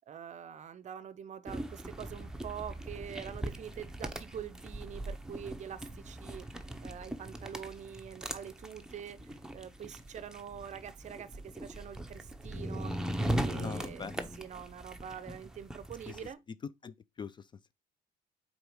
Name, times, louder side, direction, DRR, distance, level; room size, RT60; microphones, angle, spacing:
voice 1, 0.1-14.1 14.4-16.4, right 8 dB, 45° right, 0.6 m, -45 dB
sound 1, 1.5-16.3, right 1 dB, 5° right, 0.8 m, -40 dB
voice 2, 13.5-14.4 16.1-16.2 16.6-17.7, left 6 dB, 25° left, 0.4 m, -43 dB
4.9 x 4.2 x 4.6 m
cardioid pair, 110°, 17 cm